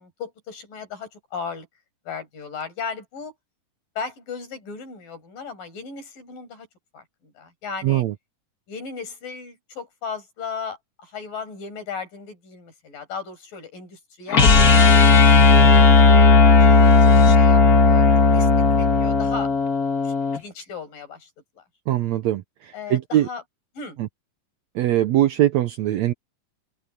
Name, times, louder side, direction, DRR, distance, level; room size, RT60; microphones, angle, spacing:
voice 1, 0.0-1.7 2.1-3.3 4.0-6.7 6.9-8.0 8.7-14.5 15.4-18.1 18.3-18.5 18.8-19.5 20.0-21.3 21.6-21.7 22.7-23.4 23.7-24.0, left 5 dB, 75° left, 7.5 m, -36 dB
voice 2, 7.8-8.1 21.9-23.3 24.0-24.1 24.7-26.1, right 13 dB, 75° right, 1.7 m, -21 dB
sound 1, 14.3-20.4, left 4 dB, 35° left, 1.5 m, -14 dB
omnidirectional pair, 3.9 m